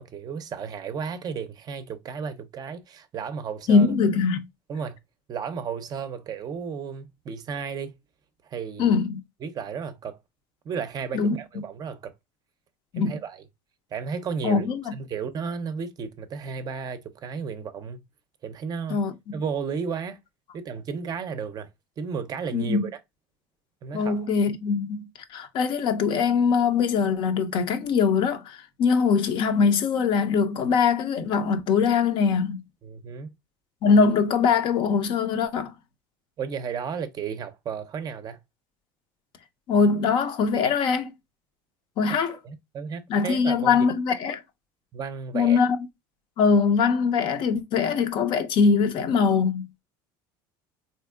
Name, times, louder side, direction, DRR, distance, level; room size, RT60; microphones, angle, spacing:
voice 1, 0.0-3.9 4.7-5.0 5.3-8.0 8.4-9.0 9.4-10.2 10.6-12.1 13.0-13.4 13.9-14.7 14.9-18.0 18.4-19.0 19.3-20.2 20.5-21.7 22.0-22.9 23.8-24.3 32.8-33.3 36.4-38.4 42.3-43.9 44.9-45.6, right 6 dB, 40° right, 0.5 m, -33 dB
voice 2, 3.7-4.4 8.8-9.2 11.1-11.4 12.9-13.1 14.4-14.9 18.9-19.4 22.5-22.8 23.9-25.0 25.3-32.6 33.8-35.7 39.7-41.1 42.0-42.4 43.1-44.4 45.3-45.7 46.4-49.7, left 5 dB, 50° left, 0.6 m, -22 dB
3.5 x 2.7 x 2.2 m
supercardioid pair, 105°, 11 cm